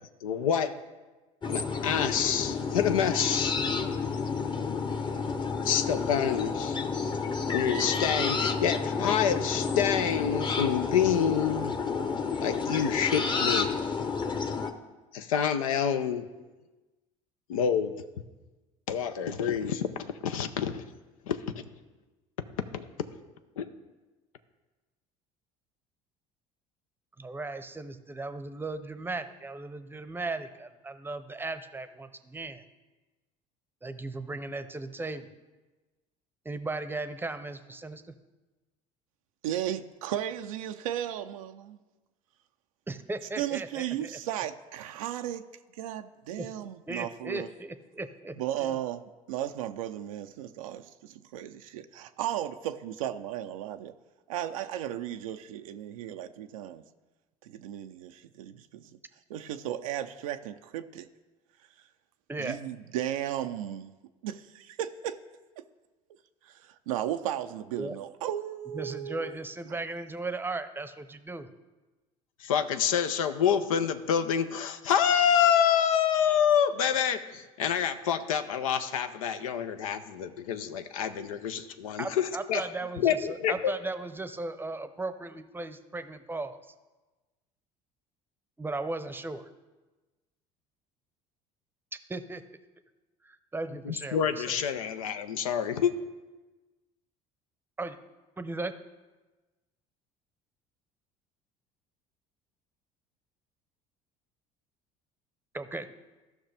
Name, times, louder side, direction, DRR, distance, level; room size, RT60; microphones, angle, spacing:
voice 1, 0.2-0.8 1.5-3.6 5.6-6.8 7.5-11.7 12.4-13.7 15.1-16.3 17.5-18.0 18.9-20.9 21.3-21.6 22.7-22.9 23.6-23.7 72.4-82.6 83.0-83.7 93.8-95.9, left 8 dB, 90° left, 9 dB, 0.5 m, -27 dB
sound 1, 1.4-14.7, left 5 dB, 25° left, 0.9 m, -30 dB
voice 2, 27.2-32.6 33.8-35.3 36.4-38.1 42.9-44.1 46.4-46.5 46.9-48.8 62.3-62.6 67.8-68.0 68.7-71.5 82.0-86.6 88.6-89.5 91.9-92.4 93.2-94.4 97.8-98.0 98.4-98.7 105.5-105.9, right 3 dB, 10° right, 11 dB, 0.7 m, -36 dB
voice 3, 39.4-41.8 43.4-45.4 45.8-47.5 48.4-53.9 54.3-56.8 57.4-58.9 59.3-61.1 62.4-63.9 64.2-65.2 66.4-69.4, right 11 dB, 85° right, 7 dB, 0.4 m, -35 dB
14.5 x 5.8 x 3.4 m, 1.2 s
hypercardioid pair, 75°, 17 cm